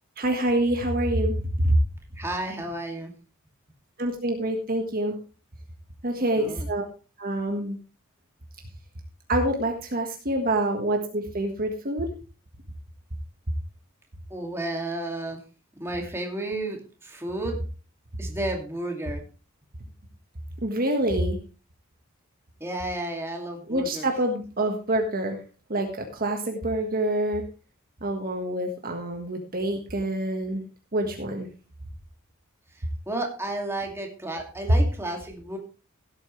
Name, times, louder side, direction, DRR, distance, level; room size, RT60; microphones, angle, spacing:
voice 1, 0.2-1.8 4.0-5.2 6.0-6.9 7.2-7.8 9.3-12.1 20.6-21.4 23.7-25.4 25.7-27.4 28.0-30.6 30.9-31.5 34.7-34.8, right 1 dB, 40° right, 3 dB, 1.5 m, -26 dB
voice 2, 2.2-3.1 6.4-6.7 14.3-15.4 15.8-17.6 18.2-19.2 22.6-24.1 33.1-35.6, right 1 dB, 10° right, 2 dB, 2.4 m, -32 dB
16.5 x 8.6 x 3.2 m, 0.34 s
head